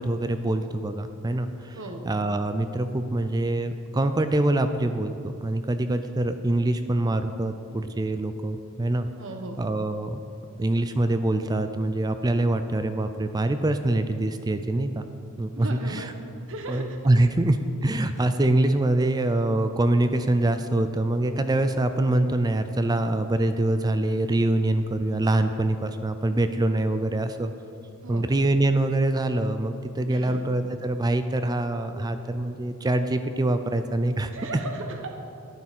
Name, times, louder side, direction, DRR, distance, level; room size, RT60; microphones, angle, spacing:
voice 1, 0.0-1.8 2.0-9.1 9.6-10.2 10.6-15.1 15.4-16.1 16.7-27.5 28.1-34.3, right 1 dB, 20° right, 9 dB, 0.4 m, -24 dB
voice 2, 9.2-9.6 15.5-16.1 16.5-16.8 28.0-28.3 30.1-30.4 31.9-32.0 34.3-35.1, right 2 dB, 60° right, 3 dB, 1.1 m, -36 dB
11.5 x 9.3 x 6.1 m, 2.6 s
head